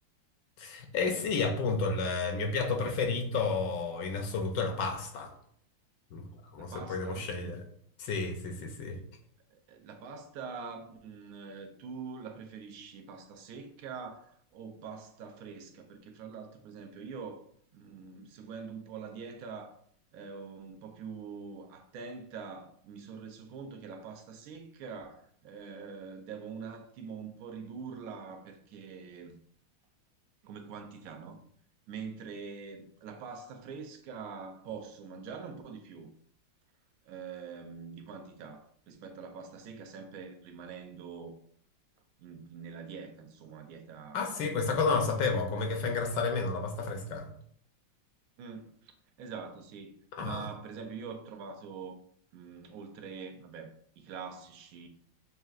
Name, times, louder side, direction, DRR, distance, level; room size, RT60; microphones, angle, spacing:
voice 1, 0.6-5.3 6.1-6.3 6.5-7.6 8.0-9.0 44.1-47.3 50.1-50.5, left 4 dB, 75° left, 1.3 m, -31 dB
voice 2, 6.6-7.3 9.5-17.4 17.7-19.8 20.1-29.4 30.4-31.4 31.9-36.1 37.0-41.3 42.2-44.7 45.1-45.2 48.4-48.9 49.2-49.9 50.2-52.0 52.3-54.9, right 5 dB, 80° right, 0.7 m, -44 dB
6.5 x 2.3 x 2.4 m
omnidirectional pair, 2.0 m